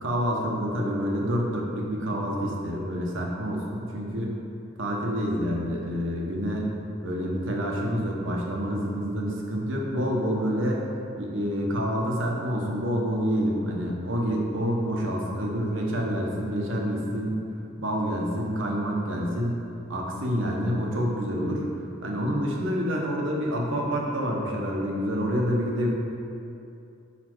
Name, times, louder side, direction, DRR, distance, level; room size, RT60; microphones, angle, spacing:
voice 1, 0.0-4.4 4.8-6.7 7.0-10.8 11.2-17.4 17.8-19.6 19.9-21.7 22.0-25.9, equal, 65° right, -1 dB, 0.9 m, -27 dB
5.8 x 4.2 x 4.5 m, 2.7 s
head